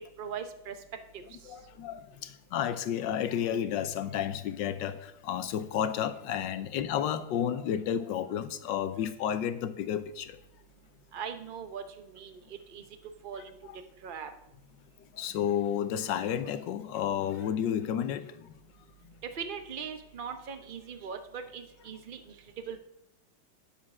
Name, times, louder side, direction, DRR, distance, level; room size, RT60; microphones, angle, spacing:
voice 1, 0.2-0.7 1.1-1.2 11.1-12.8 13.2-13.6 14.0-14.3 19.3-22.2 22.7-22.8, right 7 dB, 40° right, 0.7 m, -40 dB
voice 2, 1.5-10.4 13.7-13.8 15.1-18.5, left 9 dB, 80° left, 1.3 m, -31 dB
9.5 x 7.4 x 6.2 m
omnidirectional pair, 2.0 m